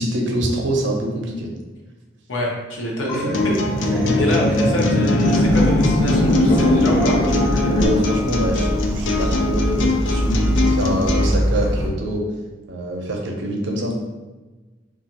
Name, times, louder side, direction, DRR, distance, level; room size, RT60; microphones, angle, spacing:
voice 1, 0.0-1.5 3.2-3.4 3.9-4.2 4.9-5.0 7.7-12.2 12.7-13.9, equal, 65° right, 1 dB, 0.5 m, -25 dB
voice 2, 2.3-3.3 3.8-7.2, left 1 dB, 85° left, -2 dB, 0.7 m, -26 dB
sound 1, 3.1-7.9, left 1 dB, 35° left, 0.6 m, -20 dB
sound 2, 3.3-11.3, left 3 dB, 70° left, 0.3 m, -23 dB
sound 3, 5.4-11.9, equal, 15° right, 0.3 m, -24 dB
2.8 x 2.4 x 2.7 m, 1.2 s
head